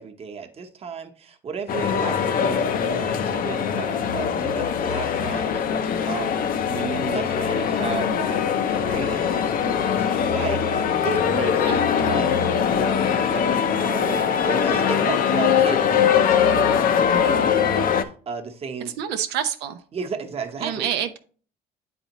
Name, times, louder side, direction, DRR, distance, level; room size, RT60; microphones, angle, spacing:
voice 1, 0.0-5.6 6.1-18.9 19.9-20.9, right 5 dB, 35° right, 4 dB, 0.9 m, -34 dB
sound 1, 1.7-18.0, left 7 dB, 55° left, 0.6 m, -22 dB
voice 2, 18.8-19.8 20.6-21.2, right 9 dB, 90° right, 7 dB, 0.5 m, -27 dB
8.9 x 4.2 x 2.9 m, 0.42 s
cardioid pair, 110°, 17 cm